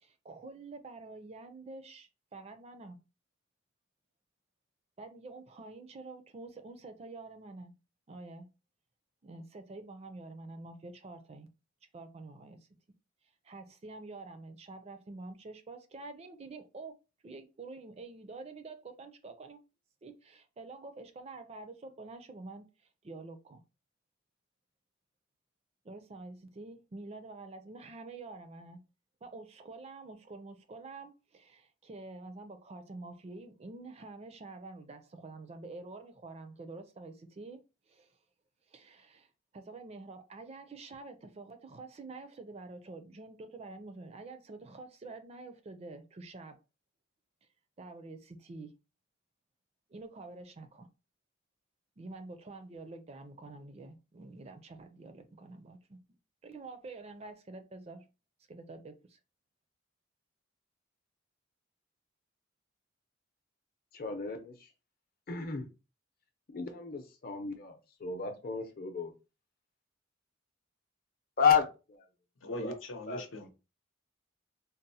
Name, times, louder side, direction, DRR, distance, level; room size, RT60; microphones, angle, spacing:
voice 1, 0.0-3.0 5.0-7.7 8.1-8.5 9.2-11.5 11.9-12.8 13.4-17.0 17.2-19.6 20.0-22.7 23.0-23.6 25.8-28.8 29.2-38.2 38.7-46.6 47.8-48.7 49.9-50.9 52.0-56.0 56.4-58.1 58.5-59.2, right 3 dB, 30° right, 0.4 m, -47 dB
voice 2, 63.9-64.7 65.3-65.7 66.5-69.1 71.4-71.6 71.9-72.0 72.5-72.7 73.1-73.3, left 6 dB, 50° left, 0.6 m, -31 dB
voice 3, 72.4-73.5, left 1 dB, 90° left, 0.8 m, -40 dB
3.9 x 2.0 x 2.7 m
head